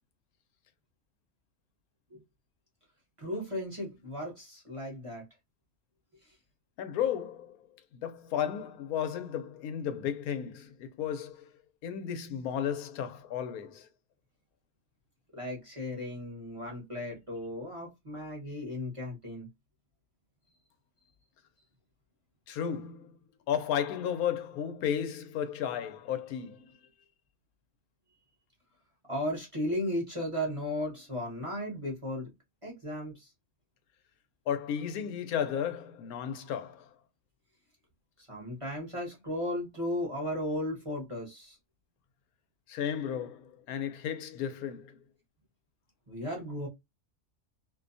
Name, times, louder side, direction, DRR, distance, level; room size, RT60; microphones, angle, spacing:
voice 1, 3.2-5.2 15.3-19.5 29.1-32.3 32.6-33.3 38.3-41.6 46.1-46.7, left 1 dB, 25° right, 0.8 m, -35 dB
voice 2, 6.8-7.6 7.9-11.5 11.8-13.9 22.5-23.2 23.5-26.7 34.5-36.9 42.7-45.0, left 9 dB, 90° left, 1.1 m, -34 dB
2.6 x 2.2 x 2.5 m
omnidirectional pair, 1.5 m